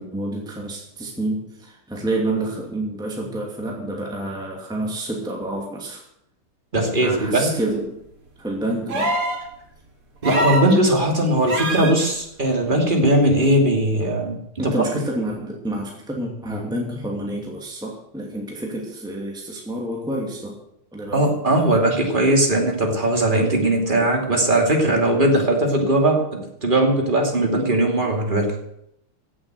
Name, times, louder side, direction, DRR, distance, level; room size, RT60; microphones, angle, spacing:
voice 1, 0.0-6.0 7.0-8.0 8.4-9.2 14.6-20.6 20.9-21.3, right 1 dB, ahead, -1 dB, 2.5 m, -28 dB
voice 2, 6.7-7.5 10.2-14.7 21.1-28.5, right 1 dB, 20° right, 2 dB, 2.8 m, -19 dB
sound 1, 8.9-9.4 10.2-10.7 11.5-12.0 13.4-13.5, right 1 dB, 80° right, 3.7 m, -23 dB
16.5 x 7.8 x 8.1 m, 0.78 s
omnidirectional pair, 2.4 m